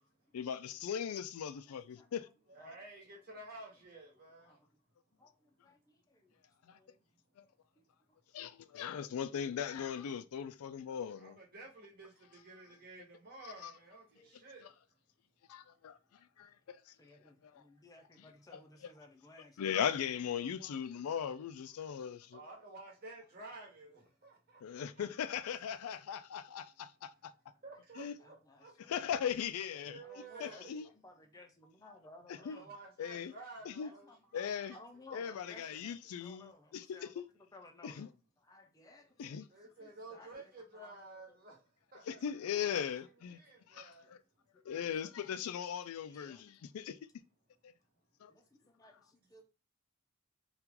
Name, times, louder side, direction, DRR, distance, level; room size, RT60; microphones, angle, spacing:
voice 1, 0.3-2.3 6.7-6.8 8.3-11.4 13.4-13.7 15.5-16.0 16.4-16.9 17.5-17.6 18.5-18.9 19.6-22.4 24.6-27.3 28.0-28.1 28.9-30.0 30.4-30.9 32.3-32.6 33.0-33.3 33.7-33.9 34.3-34.7 35.1-37.3 37.8-38.1 39.2-39.5 42.1-43.4 43.7-43.9 44.7-47.0 47.6-47.7 48.2-48.3, left 8 dB, 80° left, 0.3 m, -39 dB
voice 2, 1.5-2.3 2.6-2.8 4.5-4.6 5.2-6.3 6.7-7.0 7.8-8.2 14.1-14.5 17.0-19.9 28.2-29.1 29.7-32.7 33.8-34.3 34.7-39.4 39.8-41.4 44.5-45.7 46.1-46.5 48.3-49.4, left 2 dB, 15° left, 0.5 m, -59 dB
voice 3, 2.5-4.6 11.2-14.7 21.8-21.9 22.3-24.8 25.2-25.5 27.6-28.7 29.8-30.9 32.4-34.8 35.4-35.9 39.5-42.3 42.5-44.2, right 2 dB, 45° right, 1.2 m, -52 dB
2.9 x 2.4 x 3.6 m
head